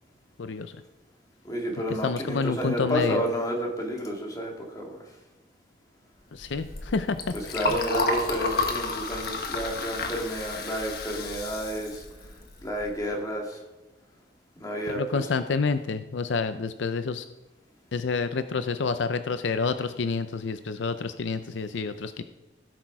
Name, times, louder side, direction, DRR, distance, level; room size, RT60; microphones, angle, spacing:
voice 1, 0.4-0.7 1.9-3.2 6.3-7.8 14.9-17.3 17.9-22.2, left 4 dB, 80° left, 10 dB, 0.5 m, -29 dB
voice 2, 1.4-5.0 7.5-12.0 12.6-13.6 14.6-15.0, equal, 20° left, -1 dB, 2.2 m, -30 dB
Liquid, 6.4-13.0, left 3 dB, 55° left, 1.4 m, -32 dB
17.0 x 6.1 x 4.8 m, 1.0 s
head